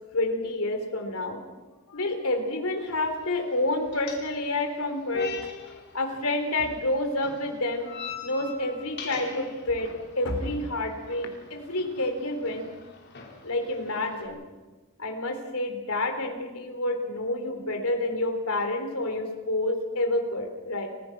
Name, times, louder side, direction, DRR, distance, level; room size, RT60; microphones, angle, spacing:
voice 1, 0.1-1.4 1.9-5.5 5.9-7.9 8.2-12.7 13.4-14.5 15.0-20.9, left 2 dB, 70° left, 5 dB, 3.6 m, -29 dB
sound 1, 2.8-14.3, left 4 dB, 50° left, 4.7 m, -43 dB
29.0 x 16.0 x 6.0 m, 1.3 s
head